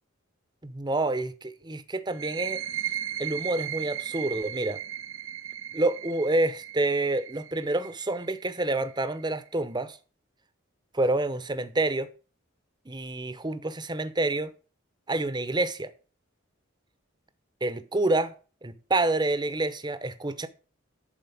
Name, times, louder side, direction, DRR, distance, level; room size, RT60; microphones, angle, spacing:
voice 1, 0.6-2.6 3.2-4.8 5.7-10.0 10.9-12.1 12.9-14.5 15.1-15.9 17.6-18.3 18.6-20.5, right 2 dB, 20° right, 0.9 m, -28 dB
sound 1, 2.1-9.5, right 11 dB, 75° right, 0.7 m, -37 dB
11.5 x 4.5 x 8.1 m
head